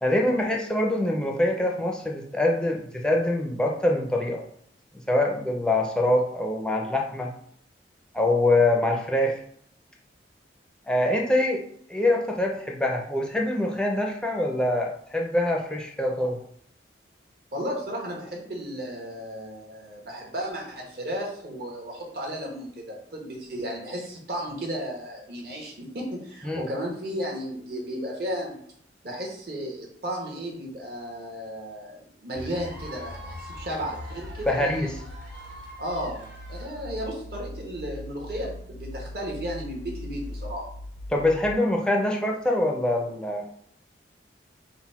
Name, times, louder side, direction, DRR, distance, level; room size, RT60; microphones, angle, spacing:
voice 1, 0.0-4.4 5.1-7.3 8.1-9.4 10.9-11.6 11.9-16.4 26.4-26.7 34.5-34.9 41.1-43.4, left 1 dB, 5° left, 0 dB, 0.4 m, -24 dB
voice 2, 17.5-28.6 29.0-34.9 35.8-36.2 36.5-40.6, equal, 55° right, -1 dB, 1.0 m, -34 dB
sound 1, 32.3-41.5, left 1 dB, 60° left, 0.5 m, -40 dB
Cheering / Applause / Crowd, 32.4-37.1, right 1 dB, 80° right, 1.1 m, -45 dB
4.0 x 2.1 x 4.1 m, 0.66 s
head